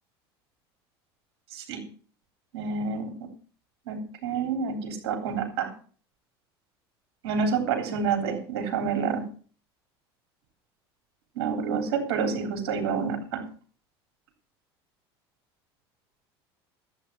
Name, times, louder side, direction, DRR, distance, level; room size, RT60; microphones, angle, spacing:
voice 1, 1.5-1.9 2.5-3.3 3.9-5.7 7.2-9.3 11.4-13.5, right 5 dB, 75° right, 4 dB, 3.5 m, -28 dB
12.5 x 8.2 x 6.9 m, 0.43 s
hypercardioid pair, 80°, 13 cm